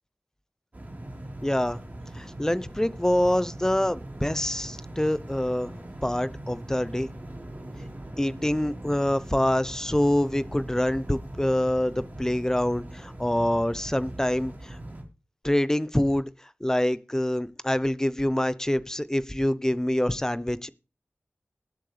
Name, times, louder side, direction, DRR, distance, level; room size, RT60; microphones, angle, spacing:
sound 1, 0.7-15.0, right 1 dB, 40° right, 3.8 m, -41 dB
voice 1, 1.4-1.8 2.1-5.8 6.0-7.1 8.2-14.8 15.4-16.3 16.6-20.7, left 1 dB, 10° left, 0.7 m, -26 dB
19.5 x 7.6 x 3.3 m
wide cardioid pair, 80°, 4 cm